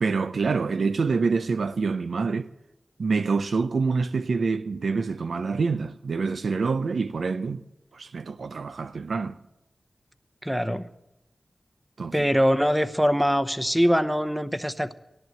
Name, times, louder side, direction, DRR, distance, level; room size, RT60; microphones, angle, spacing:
voice 1, 0.0-2.5 3.0-7.6 7.9-9.4 12.0-12.3, right 4 dB, 85° right, 0.6 m, -26 dB
voice 2, 10.4-10.9 12.1-14.9, equal, 5° right, 0.8 m, -23 dB
14.0 x 11.0 x 7.7 m
wide cardioid pair, 55°, 0 cm